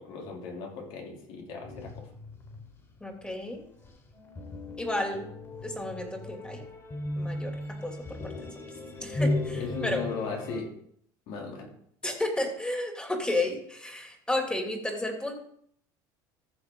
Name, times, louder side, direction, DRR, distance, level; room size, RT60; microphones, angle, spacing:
voice 1, 0.0-2.1 9.5-10.7 11.3-11.7, left 4 dB, 70° left, -1 dB, 3.2 m, -37 dB
sound 1, 1.6-10.6, left 1 dB, 30° left, 3.8 m, -36 dB
voice 2, 3.0-3.7 4.8-5.3 5.6-6.7 7.2-7.5 7.8-8.5 9.0-10.0 12.0-15.4, left 1 dB, 10° left, 2 dB, 2.7 m, -32 dB
14.5 x 6.3 x 3.8 m, 0.66 s
supercardioid pair, 110°, 10 cm